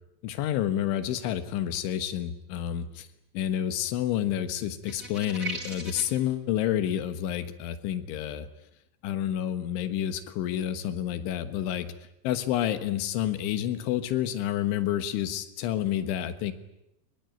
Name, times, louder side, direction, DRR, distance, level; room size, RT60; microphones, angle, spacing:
voice 1, 0.2-3.1 3.4-8.5 9.0-11.9 12.2-16.5, left 11 dB, 80° left, 11 dB, 3.8 m, -29 dB
sound 1, 4.8-6.2, right 2 dB, 15° right, 4.6 m, -37 dB
24.0 x 22.0 x 9.3 m, 0.83 s
omnidirectional pair, 5.5 m